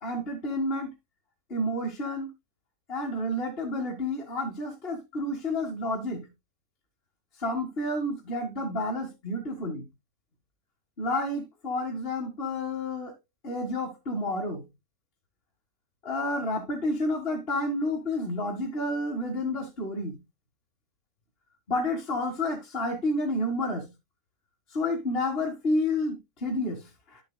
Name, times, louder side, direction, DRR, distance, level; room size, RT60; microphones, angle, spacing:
voice 1, 0.0-0.9 1.5-2.3 2.9-6.3 7.4-9.9 11.0-13.1 13.4-14.7 16.0-20.2 21.7-23.9 24.7-27.2, left 1 dB, 40° left, 2.1 m, -30 dB
12.5 x 6.7 x 2.2 m
omnidirectional pair, 1.6 m